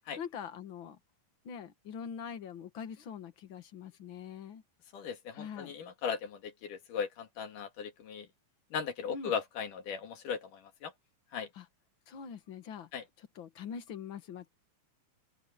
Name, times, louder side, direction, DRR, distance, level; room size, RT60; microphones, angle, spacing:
voice 1, 0.2-1.0 1.4-4.6 5.3-5.7 9.1-9.3 11.6-11.7 12.1-12.9 13.4-14.5, left 7 dB, 45° left, 1.9 m, -43 dB
voice 2, 4.9-8.3 8.7-10.9 11.3-11.5 12.9-13.0, left 6 dB, 80° left, 3.8 m, -37 dB
open air
omnidirectional pair, 3.7 m